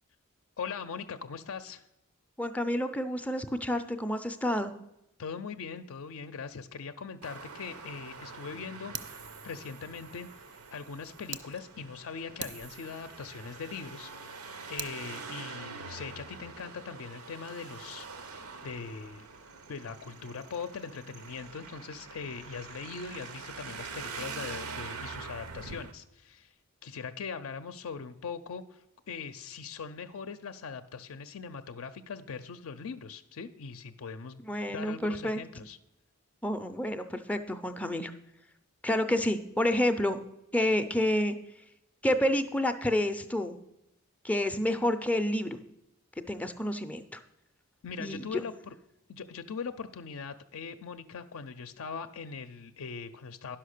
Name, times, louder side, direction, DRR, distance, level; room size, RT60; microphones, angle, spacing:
voice 1, 0.6-1.9 5.2-10.3 10.7-18.3 18.6-19.3 19.7-26.5 26.8-34.4 34.7-35.8 47.8-48.7 49.1-53.6, left 5 dB, 70° left, 9 dB, 0.5 m, -41 dB
voice 2, 2.4-4.7 34.4-35.4 36.4-38.1 38.8-40.2 40.5-41.3 42.0-43.6 44.2-45.6 46.3-47.2 48.0-48.4, left 1 dB, 5° left, 7 dB, 0.4 m, -29 dB
Traffic noise roadway noise, 7.2-25.9, right 4 dB, 85° right, 0.9 m, -45 dB
Fire, 8.9-11.5 11.9-12.0 12.4-14.9, right 7 dB, 50° right, 0.6 m, -45 dB
11.0 x 5.8 x 6.5 m, 0.88 s
head